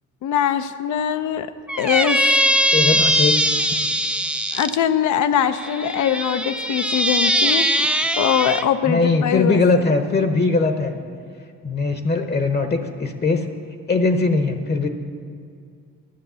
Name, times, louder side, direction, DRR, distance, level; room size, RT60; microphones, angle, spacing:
voice 1, 0.2-1.5 1.8-2.2 4.5-9.6, left 9 dB, 75° left, 10 dB, 0.6 m, -22 dB
Squeak, 1.7-4.8 5.6-8.7, equal, 5° right, 0.4 m, -20 dB
voice 2, 2.7-3.6 8.8-11.0 11.6-13.5 13.9-14.9, left 3 dB, 35° left, 6 dB, 0.9 m, -20 dB
10.5 x 9.2 x 6.8 m, 2.3 s
cardioid pair, 90°, 30 cm